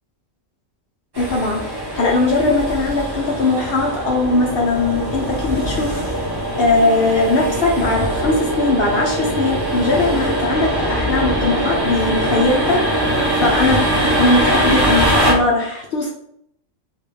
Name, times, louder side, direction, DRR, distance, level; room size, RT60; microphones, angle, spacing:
sound 1, 1.1-15.3, right 1 dB, 25° right, 0.5 m, -21 dB
voice 1, 1.2-6.0 6.6-16.1, left 2 dB, 60° left, -1 dB, 0.7 m, -19 dB
3.4 x 2.4 x 3.3 m, 0.70 s
omnidirectional pair, 1.4 m